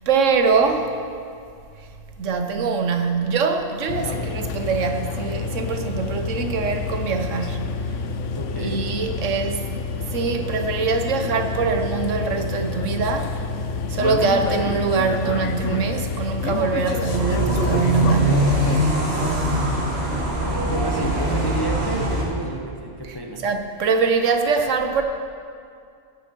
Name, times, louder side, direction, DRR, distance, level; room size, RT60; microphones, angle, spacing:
voice 1, 0.1-1.0 1.8-1.9 2.2-7.7 8.6-9.7 10.0-13.3 13.9-18.6 23.0-23.2 23.4-25.0, right 5 dB, 75° right, 6 dB, 1.2 m, -23 dB
sound 1, 3.9-18.8, left 4 dB, 75° left, 0.9 m, -28 dB
voice 2, 8.3-8.9 20.7-23.4, right 1 dB, 25° left, 1 dB, 0.6 m, -30 dB
sound 2, 17.1-22.2, right 1 dB, 55° right, 1.7 m, -22 dB
17.5 x 6.5 x 4.5 m, 2.3 s
omnidirectional pair, 1.3 m